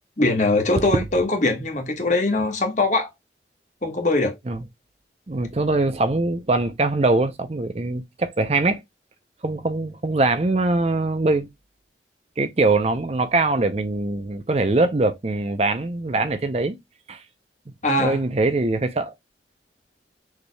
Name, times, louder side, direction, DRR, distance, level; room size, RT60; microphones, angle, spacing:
voice 1, 0.2-3.1 3.8-4.3 17.8-18.2, left 2 dB, 40° left, 1.5 m, -21 dB
voice 2, 5.3-8.8 9.4-11.5 12.4-16.8 17.1-17.2 18.0-19.1, right 2 dB, 35° right, 0.6 m, -22 dB
6.4 x 3.4 x 2.2 m
head